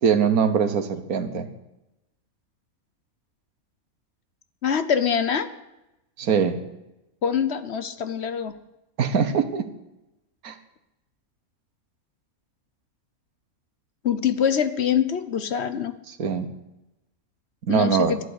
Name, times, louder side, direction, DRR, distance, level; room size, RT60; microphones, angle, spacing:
voice 1, 0.0-1.5 6.2-6.6 9.0-9.7 10.4-10.6 16.1-16.5 17.6-18.2, right 7 dB, 85° right, 10 dB, 1.7 m, -22 dB
voice 2, 4.6-5.5 7.2-8.5 14.0-15.9 17.7-18.2, left 8 dB, 55° left, 12 dB, 1.0 m, -24 dB
12.5 x 11.0 x 8.1 m, 0.94 s
omnidirectional pair, 1.5 m